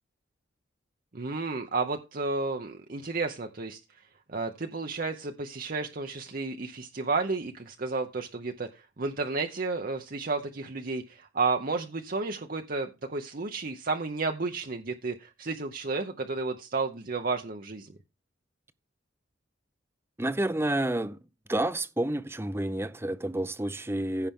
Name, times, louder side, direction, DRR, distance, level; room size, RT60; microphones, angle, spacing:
voice 1, 1.1-4.0 4.3-17.9, right 3 dB, 45° right, 0.8 m, -32 dB
voice 2, 20.2-21.2 21.5-24.3, right 1 dB, 15° right, 0.6 m, -29 dB
15.5 x 5.8 x 3.7 m
head